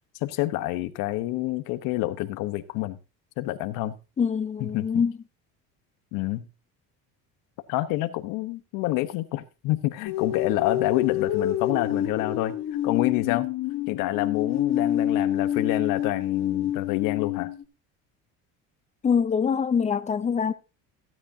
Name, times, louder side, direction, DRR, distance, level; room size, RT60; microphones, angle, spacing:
voice 1, 0.2-3.0 3.4-4.0 4.6-5.0 6.1-6.4 7.7-12.6 12.8-13.5 13.9-17.5, left 16 dB, 75° left, 1.1 m, -27 dB
voice 2, 4.2-5.1 19.0-20.5, left 6 dB, 20° left, 0.6 m, -24 dB
sound 1, 10.1-17.6, left 11 dB, 55° left, 1.4 m, -27 dB
15.5 x 9.7 x 2.7 m
cardioid pair, 135°, 33 cm